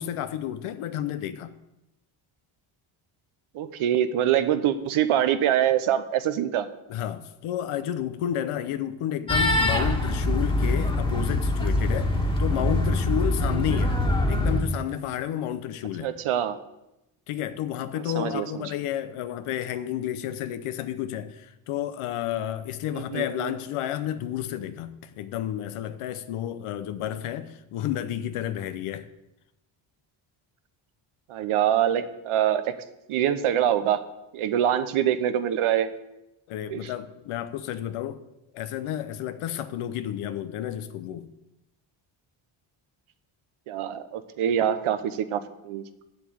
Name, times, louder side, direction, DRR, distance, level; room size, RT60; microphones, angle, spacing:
voice 1, 0.0-1.5 6.9-14.0 14.3-16.1 17.3-29.1 36.5-38.2 38.5-41.3, left 11 dB, 85° left, 0.8 m, -31 dB
voice 2, 3.5-6.7 16.0-16.6 18.1-18.6 22.9-23.5 31.3-32.6 33.1-34.0 34.3-35.9 36.7-36.9 43.7-45.8, right 10 dB, 75° right, 1.0 m, -24 dB
sound 1, 9.3-14.6, left 1 dB, 10° left, 1.6 m, -24 dB
7.8 x 6.9 x 7.8 m
cardioid pair, 85°, 50 cm